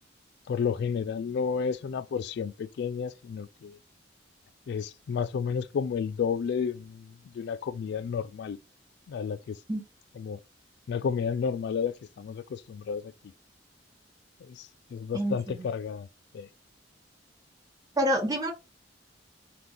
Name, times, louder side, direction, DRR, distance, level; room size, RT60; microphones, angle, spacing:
voice 1, 0.5-3.8 4.7-8.6 9.1-9.6 10.2-10.4 10.9-13.1 14.4-16.1 16.3-16.5, left 6 dB, 65° left, 0.3 m, -31 dB
voice 2, 15.1-15.7 18.0-18.5, equal, 20° right, 1.4 m, -27 dB
3.4 x 3.0 x 3.8 m
head